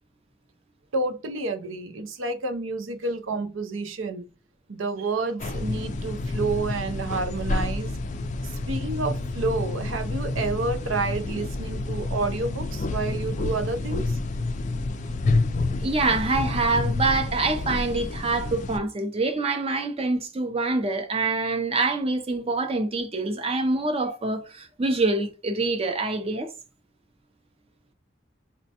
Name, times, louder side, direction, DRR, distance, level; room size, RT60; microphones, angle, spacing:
voice 1, 0.9-4.3 4.7-8.0 8.4-14.2 15.2-15.5, right 3 dB, 90° right, 0.6 m, -29 dB
sound 1, 5.4-18.8, left 2 dB, 40° left, 0.3 m, -29 dB
voice 2, 15.8-26.5, right 3 dB, 30° right, 0.5 m, -25 dB
4.2 x 2.1 x 2.8 m
head